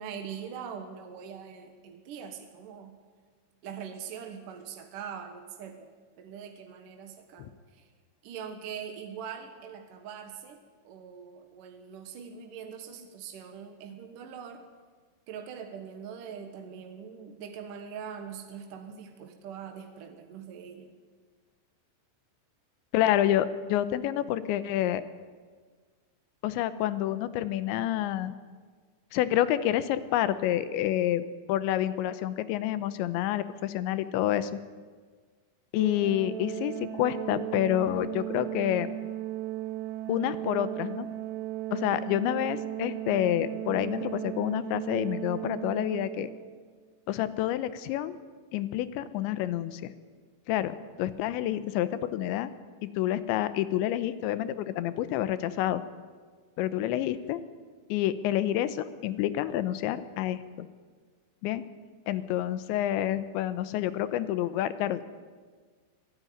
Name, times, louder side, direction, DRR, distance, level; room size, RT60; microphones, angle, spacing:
voice 1, 0.0-3.0 3.6-7.9 8.2-10.6 10.8-14.6 15.3-20.9, right 7 dB, 60° right, 5 dB, 2.5 m, -42 dB
voice 2, 22.9-25.0 26.4-28.4 29.1-34.6 35.7-38.9 40.1-41.1 41.7-46.3 47.1-48.2 48.5-49.9 50.5-52.5 52.8-55.8 56.6-57.4 57.9-60.7 61.4-61.6 62.1-65.1, left 12 dB, 85° left, 13 dB, 3.2 m, -28 dB
Organ, 35.8-46.6, right 15 dB, 85° right, 1.9 m, -36 dB
24.0 x 15.0 x 9.6 m, 1.5 s
omnidirectional pair, 5.2 m